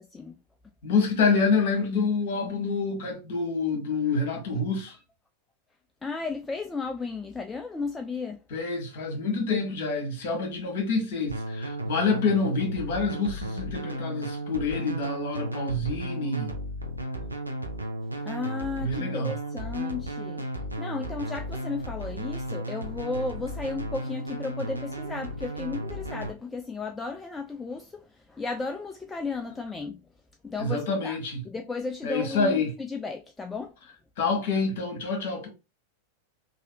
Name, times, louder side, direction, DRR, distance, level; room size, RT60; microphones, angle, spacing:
voice 1, 0.8-4.9 8.5-16.5 18.8-19.3 30.6-31.4 32.0-32.8 34.2-35.5, left 4 dB, 50° left, 1.3 m, -27 dB
voice 2, 6.0-8.4 18.2-20.4 20.8-30.0 30.4-31.2 31.5-33.7, left 4 dB, 10° left, 0.3 m, -34 dB
sound 1, 11.3-26.3, right 1 dB, 85° right, 0.5 m, -34 dB
3.2 x 2.7 x 2.7 m
figure-of-eight pair, 90°, 0 cm